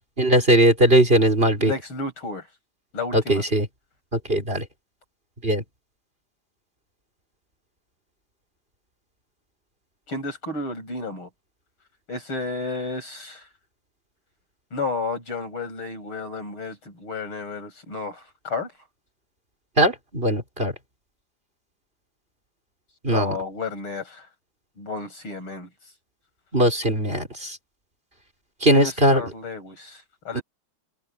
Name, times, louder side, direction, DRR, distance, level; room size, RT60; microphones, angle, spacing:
voice 1, 0.2-1.7 3.1-3.7 4.1-4.6 5.4-5.6 19.8-20.7 23.0-23.4 26.5-27.6 28.6-29.2 30.3-30.4, right 1 dB, 25° right, 4.7 m, -19 dB
voice 2, 1.6-2.5 2.9-3.4 10.1-11.3 12.1-13.5 14.7-18.7 23.1-24.3 24.8-25.7 28.7-30.4, left 3 dB, 80° left, 8.4 m, -32 dB
omnidirectional pair, 2.3 m